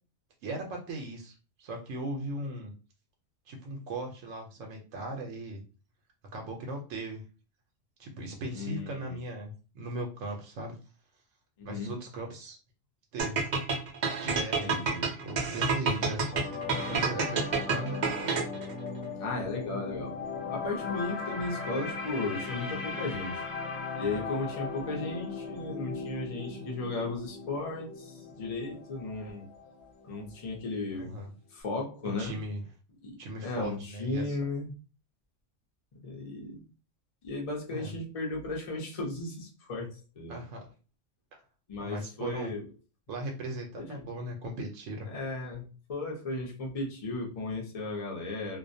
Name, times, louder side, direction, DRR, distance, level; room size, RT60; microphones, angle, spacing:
voice 1, 0.4-2.7 3.5-5.6 6.3-7.2 8.0-10.8 11.6-12.6 13.1-13.5 14.2-14.8 15.2-16.2 16.9-18.0 30.9-31.3 32.2-32.6 33.2-34.4 37.7-38.0 40.3-40.7 41.8-42.5 43.1-45.1, right 1 dB, 80° right, 1 dB, 1.0 m, -38 dB
voice 2, 8.5-9.2 11.6-11.9 14.6-15.1 16.0-16.1 19.2-20.1 20.5-23.5 24.0-29.5 30.0-31.2 31.5-32.4 33.0-34.7 36.0-36.6 37.2-40.4 41.7-42.7 43.8-44.0 45.1-48.6, left 2 dB, 35° left, -1 dB, 0.6 m, -35 dB
sound 1, 13.2-18.7, right 4 dB, 60° right, 0.4 m, -29 dB
sound 2, 16.3-30.5 30.8-31.0, left 4 dB, 65° left, 0.9 m, -38 dB
2.4 x 2.1 x 2.6 m, 0.34 s
omnidirectional pair, 1.3 m